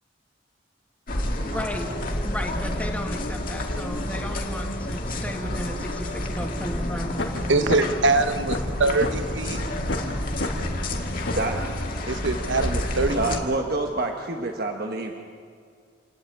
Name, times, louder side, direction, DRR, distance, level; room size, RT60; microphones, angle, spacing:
sound 1, 1.1-13.4, left 1 dB, 50° left, 2.2 m, -29 dB
voice 1, 1.4-7.2, equal, 10° left, 3 dB, 1.6 m, -34 dB
sound 2, 7.2-7.3 7.7-7.8 8.2-9.1 9.5-9.6 9.9-10.1 10.4-10.5 10.9-11.0 11.3-11.5, left 2 dB, 80° left, 2.4 m, -29 dB
voice 2, 7.5-9.6 12.1-13.4, right 3 dB, 85° right, 10 dB, 1.0 m, -23 dB
voice 3, 11.3-11.9 13.1-15.1, right 2 dB, 55° right, 3 dB, 1.2 m, -28 dB
28.5 x 10.5 x 9.1 m, 2.2 s
head